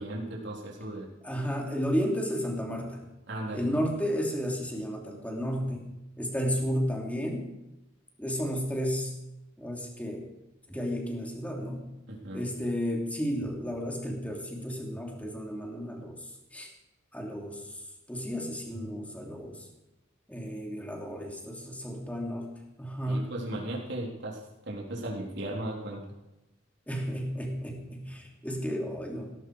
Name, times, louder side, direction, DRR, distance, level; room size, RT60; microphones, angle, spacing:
voice 1, 0.0-1.1 3.3-3.7 12.1-12.4 23.1-26.0, right 1 dB, 60° right, -3 dB, 3.9 m, -36 dB
voice 2, 1.2-3.1 3.5-5.9 6.2-7.5 8.2-9.1 9.6-10.3 10.7-11.9 12.3-16.7 17.1-17.8 18.1-19.7 20.3-22.5 22.8-23.3 26.9-29.3, equal, 5° left, 0 dB, 3.0 m, -32 dB
17.5 x 14.5 x 4.9 m, 0.96 s
head